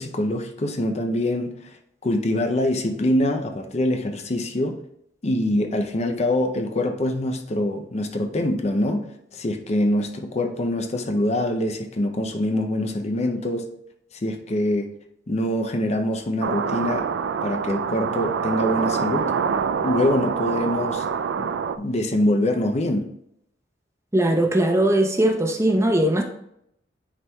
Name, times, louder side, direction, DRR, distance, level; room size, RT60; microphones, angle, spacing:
voice 1, 0.0-1.7 2.0-4.8 5.2-9.0 9.3-13.7 14.1-14.9 15.3-17.1 17.4-19.3 19.8-21.1 21.4-21.5 21.8-23.1, left 1 dB, 35° left, 5 dB, 0.5 m, -24 dB
sound 1, 16.4-21.8, right 6 dB, 75° right, 0.3 m, -25 dB
voice 2, 24.1-26.2, right 1 dB, 15° right, 2 dB, 0.7 m, -20 dB
9.5 x 4.5 x 2.3 m, 0.75 s
head